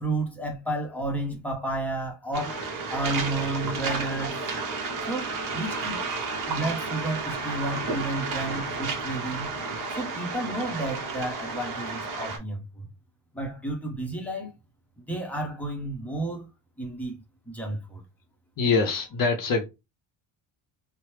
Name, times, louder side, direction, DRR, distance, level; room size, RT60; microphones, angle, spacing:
voice 1, 0.0-2.6 2.9-4.4 5.1-6.0 6.5-9.5 9.9-12.8 13.3-14.5 15.0-16.5 16.8-17.2 17.5-18.0, right 2 dB, 5° left, 0.7 m, -31 dB
Waves surf, 2.3-12.4, right 4 dB, 40° right, 0.9 m, -32 dB
voice 2, 18.6-19.6, left 4 dB, 45° left, 0.6 m, -24 dB
3.1 x 2.1 x 3.1 m
cardioid pair, 135°, 49 cm